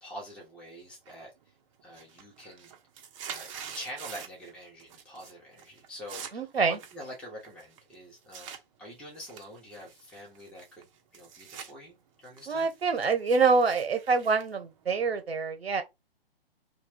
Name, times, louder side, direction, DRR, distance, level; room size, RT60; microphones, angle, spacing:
voice 1, 0.0-1.3 1.8-2.7 3.2-10.8 11.1-12.7, equal, 5° left, 0.8 m, -46 dB
sound 1, 1.1-1.5 1.8-4.5 4.8-5.3 5.6-8.6 9.1-11.7 12.1-15.2, right 7 dB, 35° right, 0.6 m, -46 dB
voice 2, 6.3-6.8 12.5-15.8, right 4 dB, 90° right, 0.8 m, -26 dB
2.6 x 2.2 x 3.4 m
hypercardioid pair, 130°, 30 cm